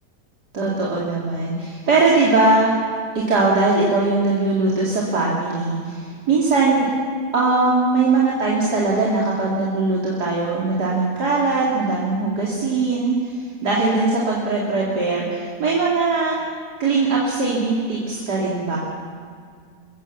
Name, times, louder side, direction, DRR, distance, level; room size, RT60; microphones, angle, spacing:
voice 1, 0.5-2.8 3.3-6.9 7.3-13.2 13.6-16.4 16.8-18.8, right 3 dB, 65° right, -5 dB, 3.3 m, -20 dB
23.5 x 15.5 x 7.3 m, 2.1 s
omnidirectional pair, 1.9 m